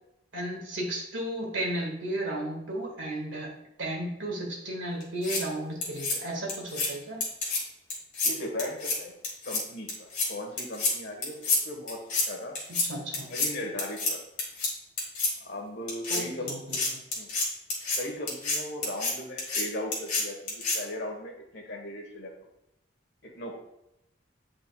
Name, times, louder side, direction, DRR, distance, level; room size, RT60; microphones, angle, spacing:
voice 1, 0.3-3.5 3.8-7.2 12.7-13.3 16.1-16.8, right 1 dB, 70° right, -1 dB, 1.8 m, -34 dB
sound 1, 5.0-5.4 5.8-6.1 6.5-6.9 7.2-7.6 7.9-8.3 8.6-8.9 9.2-9.6 9.9-10.3 10.6-10.9 11.2-11.6 11.9-12.2 12.5-12.8 13.1-13.5 13.8-14.1 14.4-14.7 15.0-15.3 15.9-16.2 16.5-18.0 18.3-18.6 18.8-19.1 19.4-19.6 19.9-20.2 20.5-20.8, left 3 dB, 40° left, 1.9 m, -28 dB
voice 2, 8.2-9.1 9.4-11.4 11.6-12.0 12.3-12.6 13.2-14.2 15.4-16.5 17.1-17.3 17.9-22.3 23.2-23.5, left 1 dB, 55° left, 1 dB, 1.3 m, -37 dB
8.7 x 5.1 x 2.3 m, 0.84 s
head